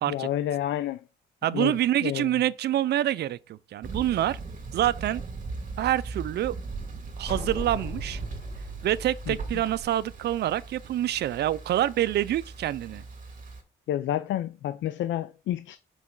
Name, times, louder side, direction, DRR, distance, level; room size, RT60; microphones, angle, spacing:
voice 1, 0.1-1.0 1.5-2.3 9.3-9.4 13.9-15.8, left 12 dB, 70° left, 0.4 m, -29 dB
voice 2, 1.4-4.4 4.7-5.2 5.8-6.5 7.2-8.2 8.8-13.0, right 12 dB, 60° right, 0.4 m, -26 dB
Thunder, 3.8-13.6, right 4 dB, 40° right, 2.1 m, -39 dB
sound 1, 7.3-10.7, left 1 dB, 30° left, 2.9 m, -39 dB
6.0 x 4.8 x 3.8 m
cardioid pair, 90°, 20 cm